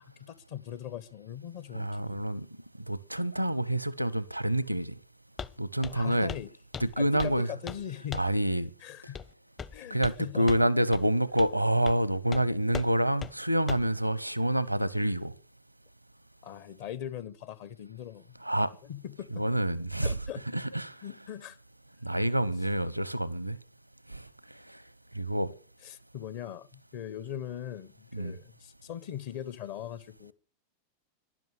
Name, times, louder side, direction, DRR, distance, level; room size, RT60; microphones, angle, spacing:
voice 1, 0.0-2.3 5.9-6.5 7.0-8.2 8.8-9.2 9.7-10.5 16.4-18.4 18.8-19.6 20.0-20.5 21.0-21.6 25.8-30.3, left 10 dB, 50° left, 0.9 m, -40 dB
voice 2, 1.7-2.5 2.9-4.9 5.6-6.3 6.8-7.5 8.1-8.7 9.9-15.3 18.4-18.7 19.3-20.1 20.5-21.0 22.0-23.6 24.1-24.2 25.1-25.5 28.1-28.4, right 1 dB, 90° right, 0.8 m, -27 dB
Walk footsteps, 5.4-5.6 5.8-6.0 6.3-6.5 6.7-7.4 7.7-7.8 8.1-8.4 9.2-9.3 9.6-10.2 10.5-10.6 10.9-11.0 11.4-11.5 11.9-12.0 12.3-12.4 12.7-12.9 13.2-13.3 13.7-13.9, left 6 dB, 20° left, 0.6 m, -39 dB
12.5 x 11.0 x 9.6 m
figure-of-eight pair, 90°, 0 cm